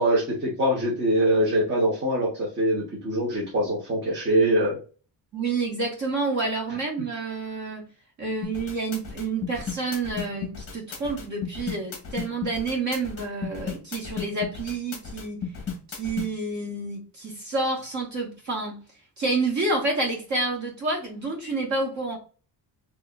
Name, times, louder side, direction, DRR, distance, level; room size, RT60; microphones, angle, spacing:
voice 1, 0.0-4.8, right 1 dB, 25° right, 1.2 m, -23 dB
voice 2, 5.3-7.9 8.2-15.5 15.9-18.8 19.2-22.2, right 3 dB, 40° right, 1.6 m, -29 dB
sound 1, 8.4-16.3, left 6 dB, 30° left, 1.0 m, -34 dB
4.8 x 2.9 x 2.5 m
cardioid pair, 170°, 42 cm